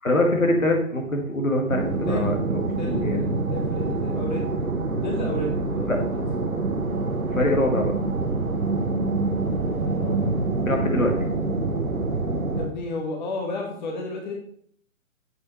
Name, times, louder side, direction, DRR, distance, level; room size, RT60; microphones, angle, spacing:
voice 1, 0.0-2.6 2.9-3.3 5.9-6.0 7.3-7.9 10.6-11.2, left 1 dB, 75° left, 2 dB, 1.7 m, -23 dB
sound 1, 1.7-12.7, right 3 dB, 85° right, 1.0 m, -26 dB
voice 2, 1.9-2.3 2.7-4.5 5.0-6.2 9.6-10.4 12.5-14.3, left 2 dB, 35° left, 1 dB, 1.1 m, -33 dB
7.6 x 5.9 x 3.0 m, 0.63 s
figure-of-eight pair, 135°, 41 cm